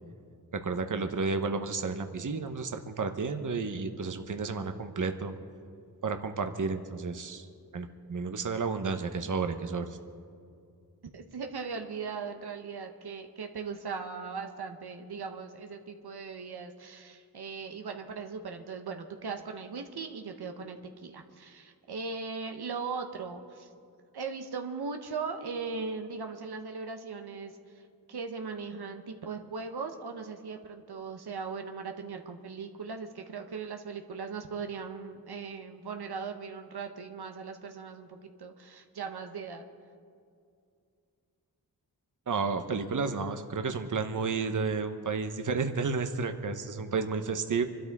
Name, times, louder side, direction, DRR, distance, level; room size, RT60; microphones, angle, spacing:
voice 1, 0.5-5.3 6.0-7.5 7.7-9.9 42.3-47.6, right 4 dB, 55° right, 7 dB, 1.0 m, -31 dB
voice 2, 11.1-23.7 24.1-27.5 28.1-39.6, right 5 dB, 85° right, 5 dB, 1.1 m, -39 dB
25.5 x 12.5 x 3.6 m, 2.4 s
cardioid pair, 60°, 38 cm